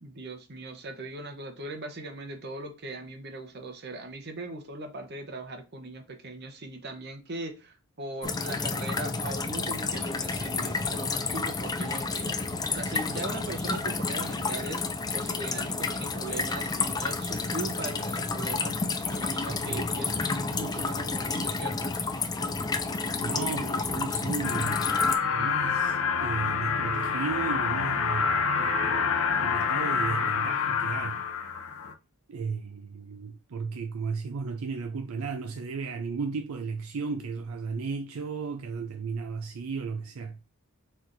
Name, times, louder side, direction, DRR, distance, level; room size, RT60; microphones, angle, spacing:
voice 1, 0.0-18.8 19.1-22.0, right 2 dB, 50° right, 0.9 m, -39 dB
sound 1, 8.2-25.2, left 4 dB, 15° left, 0.4 m, -30 dB
voice 2, 19.5-19.8 23.2-29.1 29.4-31.2 32.3-40.4, right 5 dB, 75° right, 0.4 m, -35 dB
sound 2, 24.4-31.9, left 6 dB, 70° left, 0.6 m, -27 dB
4.4 x 4.2 x 2.6 m
head